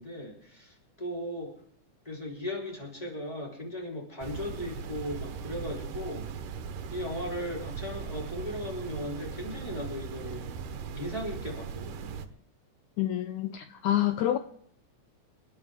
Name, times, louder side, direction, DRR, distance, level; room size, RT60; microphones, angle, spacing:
voice 1, 0.0-1.6 2.0-6.3 6.9-10.5 10.9-12.2, left 1 dB, 10° left, 4.1 m, -37 dB
sound 1, 4.2-12.3, right 6 dB, 85° right, 2.7 m, -39 dB
voice 2, 13.0-14.4, left 12 dB, 75° left, 2.1 m, -27 dB
28.5 x 13.5 x 3.7 m
omnidirectional pair, 3.6 m